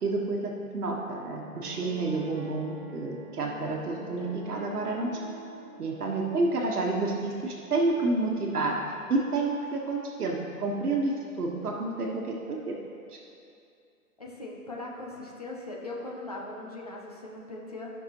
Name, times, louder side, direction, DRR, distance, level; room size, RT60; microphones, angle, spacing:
voice 1, 0.0-5.1 5.8-8.8 9.1-12.8 13.1-13.2, right 3 dB, 75° right, -1 dB, 1.4 m, -29 dB
Piano, 1.5-6.8, right 1 dB, 35° right, 1.1 m, -45 dB
voice 2, 14.2-17.9, left 2 dB, 25° left, -2 dB, 0.7 m, -40 dB
13.5 x 5.9 x 3.0 m, 2.5 s
hypercardioid pair, 170°, 45 cm